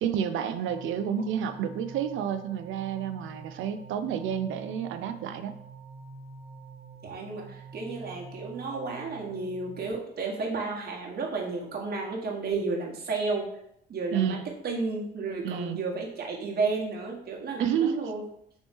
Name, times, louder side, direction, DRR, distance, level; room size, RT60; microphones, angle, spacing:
voice 1, 0.0-5.6 14.1-14.4 15.4-15.8 17.6-18.1, right 8 dB, 80° right, 9 dB, 0.4 m, -30 dB
sound 1, 0.7-9.9, right 4 dB, 35° right, 0.7 m, -47 dB
voice 2, 7.0-13.6 13.9-18.2, right 3 dB, 55° right, -1 dB, 1.1 m, -32 dB
4.1 x 3.0 x 3.4 m, 0.72 s
cardioid pair, 90°, 20 cm